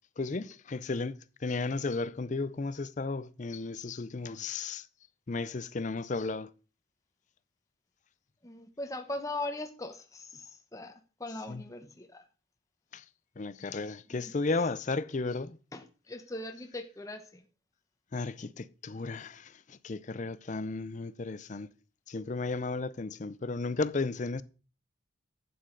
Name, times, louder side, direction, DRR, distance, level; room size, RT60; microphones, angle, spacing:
voice 1, 0.2-1.1 1.4-4.9 5.3-6.5 11.5-11.6 12.9-13.0 13.4-15.6 18.1-21.7 22.1-24.4, left 3 dB, 35° left, 0.5 m, -34 dB
voice 2, 8.4-10.9 11.2-12.2 14.1-14.3 15.7-17.4, left 2 dB, 15° left, 0.9 m, -40 dB
11.5 x 8.4 x 3.9 m
head